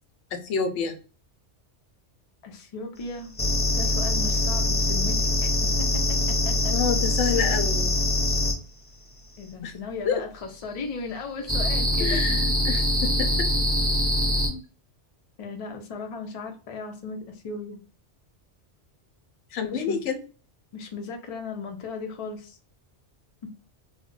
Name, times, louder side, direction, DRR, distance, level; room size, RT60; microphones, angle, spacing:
voice 1, 0.3-1.0 6.7-7.9 9.6-9.7 10.1-10.2 12.0-13.5 14.5-14.6 19.5-20.2, left 6 dB, 80° left, 6 dB, 0.9 m, -28 dB
voice 2, 2.4-3.3 3.7-5.5 5.8-6.7 7.2-7.8 9.4-12.4 15.4-17.8 19.7-20.1 20.7-22.6, left 4 dB, 45° left, 3 dB, 0.4 m, -37 dB
sound 1, 3.4-8.5 11.5-14.5, left 1 dB, 10° left, 0.7 m, -23 dB
2.3 x 2.1 x 3.6 m, 0.38 s
omnidirectional pair, 1.2 m